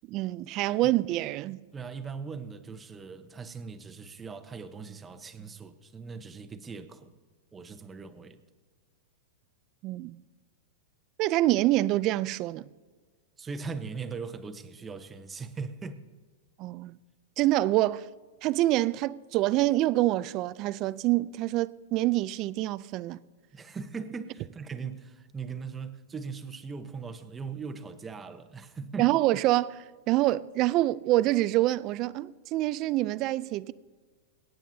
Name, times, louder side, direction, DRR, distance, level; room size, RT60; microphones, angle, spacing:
voice 1, 0.1-1.6 9.8-10.2 11.2-12.7 16.6-16.9 17.4-18.1 18.4-23.2 29.0-33.7, right 16 dB, 40° right, 0.4 m, -26 dB
voice 2, 1.7-7.2 7.5-8.4 13.4-16.0 23.5-29.1, right 5 dB, 15° right, 0.9 m, -39 dB
25.5 x 9.0 x 2.7 m
hypercardioid pair, 140°, 0 cm